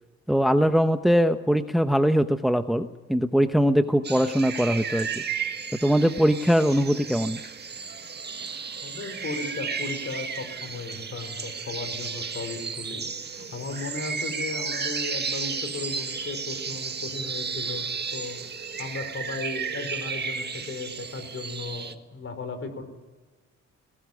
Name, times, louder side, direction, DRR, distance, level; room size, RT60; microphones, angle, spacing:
voice 1, 0.3-5.2 5.8-7.4, equal, ahead, 9 dB, 0.9 m, -22 dB
sound 1, 4.0-21.9, right 5 dB, 35° right, 1.8 m, -33 dB
voice 2, 8.8-13.0 13.4-18.4 18.8-22.8, left 3 dB, 45° left, 9 dB, 4.6 m, -36 dB
19.5 x 18.0 x 9.7 m, 1.2 s
cardioid pair, 90°, 30 cm